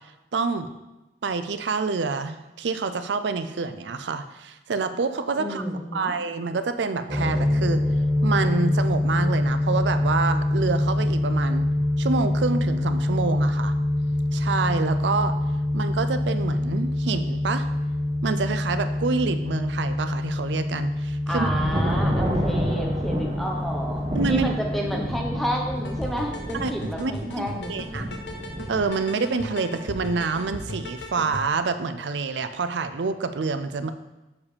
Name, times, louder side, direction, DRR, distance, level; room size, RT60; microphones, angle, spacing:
voice 1, 0.3-0.7 1.2-5.6 5.9-7.8 8.2-11.7 12.0-13.7 14.3-15.3 15.7-17.7 18.2-21.5 24.1-24.5 26.6-28.1 28.7-33.9, right 4 dB, 85° right, 10 dB, 0.5 m, -27 dB
voice 2, 5.4-6.1 21.3-27.9, equal, ahead, 0 dB, 0.9 m, -31 dB
sound 1, 7.1-26.1, left 1 dB, 50° right, 1.6 m, -25 dB
sound 2, 21.3-28.9, equal, 30° right, 1.1 m, -30 dB
Arpeggiated Synth Delay, 25.7-31.4, left 1 dB, 80° left, 0.9 m, -37 dB
6.8 x 4.8 x 5.1 m, 1.0 s
head